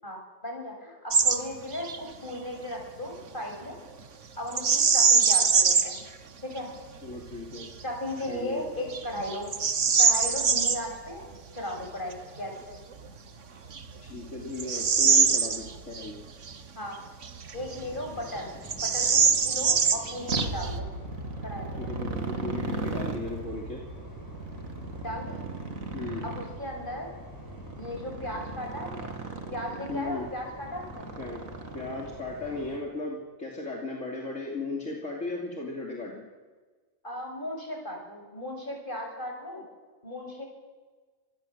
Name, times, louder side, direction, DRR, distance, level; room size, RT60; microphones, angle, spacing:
voice 1, 0.0-3.8 4.4-6.0 6.4-6.7 7.8-9.5 10.0-11.2 11.5-12.8 16.8-17.0 17.5-20.9 21.4-21.9 25.0-25.4 26.2-27.1 27.7-29.1 29.5-31.1 37.0-39.6 40.0-40.4, left 1 dB, 40° left, 1 dB, 7.2 m, -36 dB
Bird vocalization bird call bird song, 1.1-1.4 1.7-2.0 4.5-6.0 6.6-6.7 7.3-7.7 8.2-8.4 8.9-10.8 12.9-13.0 13.7-16.1 16.4-16.5 17.2-18.0 18.3-18.4 18.7-20.8, right 5 dB, 65° right, 1.7 m, -23 dB
voice 2, 7.0-7.7 8.3-8.7 14.0-16.2 21.8-23.8 25.9-26.3 29.9-30.3 31.2-31.4 31.7-36.3, left 3 dB, 65° left, -1 dB, 3.4 m, -36 dB
sound 1, 17.5-32.8, equal, 15° left, 6.5 m, -47 dB
Motorcycle, 20.3-32.4, right 3 dB, 85° right, 2.6 m, -37 dB
26.0 x 21.5 x 8.0 m, 1.4 s
omnidirectional pair, 1.4 m